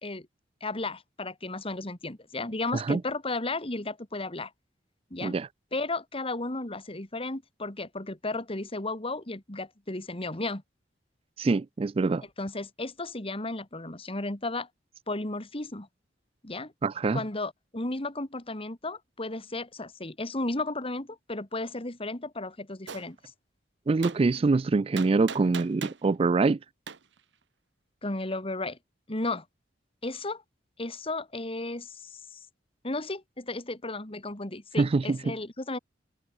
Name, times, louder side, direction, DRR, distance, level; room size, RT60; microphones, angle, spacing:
voice 1, 0.6-4.5 5.1-5.4 5.7-10.6 12.4-14.7 15.1-15.9 16.4-16.7 17.1-23.2 28.0-28.8 29.1-29.4 30.0-30.4 30.8-32.4 32.8-35.8, left 2 dB, 30° left, 2.4 m, -34 dB
voice 2, 11.4-12.2 16.8-17.2 23.9-26.6 34.8-35.3, right 3 dB, 30° right, 0.4 m, -25 dB
Gunshot gunfire, 22.9-23.1 24.0-24.2 25.0-26.0 26.9-27.0, right 6 dB, 75° right, 1.2 m, -38 dB
open air
head